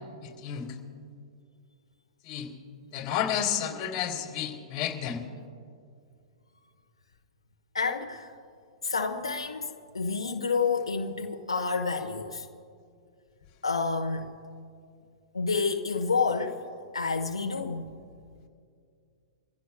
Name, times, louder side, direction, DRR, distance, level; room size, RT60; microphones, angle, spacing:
voice 1, 0.2-0.7 2.2-2.5 2.9-5.2, left 9 dB, 35° left, 2.8 m, -31 dB
voice 2, 7.7-8.3 8.8-12.5 13.6-14.3 15.3-16.6 16.9-17.9, left 4 dB, 90° left, 1.1 m, -29 dB
27.0 x 15.5 x 2.3 m
hypercardioid pair, 115°, 3 cm